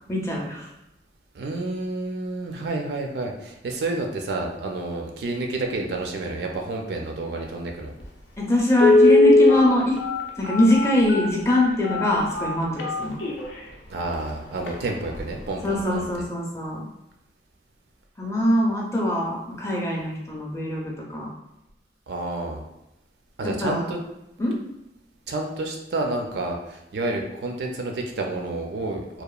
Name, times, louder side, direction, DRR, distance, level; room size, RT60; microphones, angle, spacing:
voice 1, 0.1-0.7 8.4-9.9 10.4-13.2 15.6-16.9 18.2-21.3 23.6-23.9 24.4-24.5, left 1 dB, 15° left, -3 dB, 0.5 m, -23 dB
voice 2, 1.3-7.9 13.9-16.0 22.1-22.6 23.4-24.0 25.3-29.2, right 2 dB, 65° right, 2 dB, 0.4 m, -29 dB
Telephone, 8.0-8.1 8.7-13.6 14.1-14.2 14.6-14.8 15.1-15.4 15.8-15.9, left 2 dB, 85° left, 0.5 m, -19 dB
2.8 x 2.1 x 2.3 m, 0.88 s
head